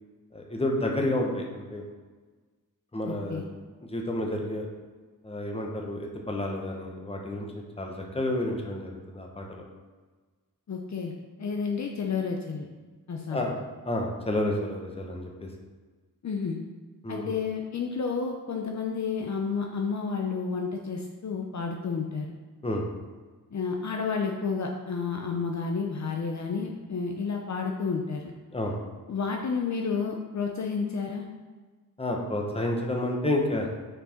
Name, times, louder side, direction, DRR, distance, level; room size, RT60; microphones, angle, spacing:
voice 1, 0.3-1.8 2.9-3.6 3.9-4.7 5.2-7.5 7.8-9.6 13.3-13.6 13.8-15.5 17.0-17.3 22.6-22.9 28.5-28.8 32.0-33.8, left 1 dB, 15° left, 0 dB, 1.1 m, -30 dB
voice 2, 3.0-3.4 10.7-11.1 11.4-12.7 13.1-13.6 16.2-16.6 17.1-22.3 23.5-28.3 29.1-31.3, left 5 dB, 50° left, 1 dB, 0.7 m, -31 dB
6.5 x 4.6 x 4.4 m, 1.4 s
wide cardioid pair, 120°, 35 cm